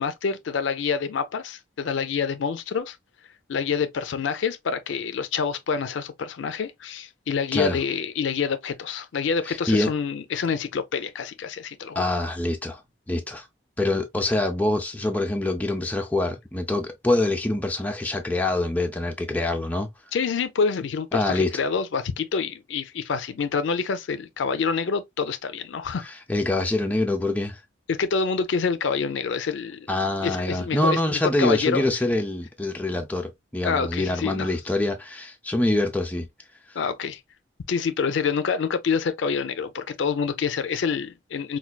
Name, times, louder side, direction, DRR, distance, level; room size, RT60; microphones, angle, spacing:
voice 1, 0.0-3.0 3.5-12.0 20.1-26.1 27.9-29.9 30.2-31.8 33.6-34.5 36.8-37.2 37.7-41.6, left 5 dB, 75° left, 0.4 m, -27 dB
voice 2, 9.5-9.9 12.0-12.8 13.1-13.5 13.8-19.9 21.1-21.5 26.3-27.6 29.9-36.3 36.7-36.8, left 2 dB, 10° left, 0.4 m, -25 dB
4.4 x 2.2 x 2.2 m
head